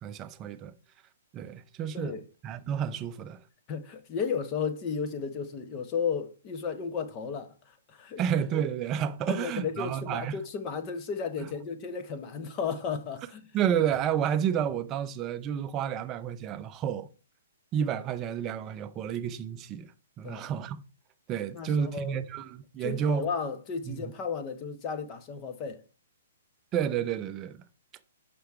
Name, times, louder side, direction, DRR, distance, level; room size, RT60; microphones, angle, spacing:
voice 1, 0.0-0.7 1.3-2.2 2.4-3.4 8.2-10.4 11.4-11.5 13.5-17.1 17.7-19.9 20.2-20.8 21.3-23.3 23.9-24.0 26.7-27.6, right 8 dB, 20° right, 0.5 m, -30 dB
voice 2, 3.7-8.2 9.3-13.4 20.2-20.5 21.5-22.2 22.8-25.8, left 6 dB, 25° left, 0.8 m, -34 dB
5.9 x 5.1 x 4.6 m
hypercardioid pair, 155°, 0 cm